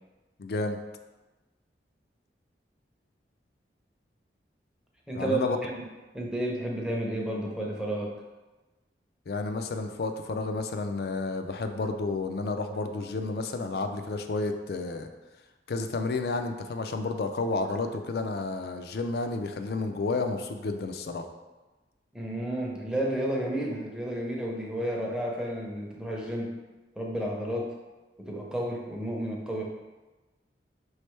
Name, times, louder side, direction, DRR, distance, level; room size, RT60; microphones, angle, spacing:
voice 1, 0.4-0.8 5.1-5.6 9.3-15.1 15.7-21.3, left 3 dB, 60° left, 7 dB, 0.4 m, -31 dB
voice 2, 5.1-5.8 6.1-8.2 22.1-26.5 27.0-27.8 28.2-29.6, right 1 dB, 5° right, -2 dB, 0.6 m, -31 dB
5.2 x 3.2 x 3.2 m, 1.2 s
head